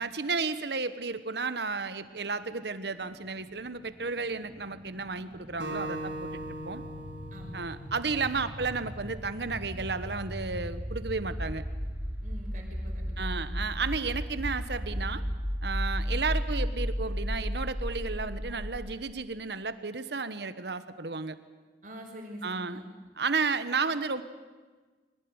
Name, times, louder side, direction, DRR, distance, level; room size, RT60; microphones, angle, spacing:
voice 1, 0.0-6.3 6.6-6.8 7.5-11.6 13.2-15.2 15.6-21.4 22.4-22.8 23.2-24.2, right 4 dB, 70° right, 12 dB, 1.3 m, -33 dB
sound 1, 3.0-18.9, equal, 10° right, 2.4 m, -35 dB
Acoustic guitar, 5.6-8.9, right 1 dB, 90° right, 3.8 m, -40 dB
voice 2, 12.2-13.6 21.8-22.8, equal, 45° right, 1 dB, 5.8 m, -45 dB
23.0 x 19.0 x 9.7 m, 1.4 s
head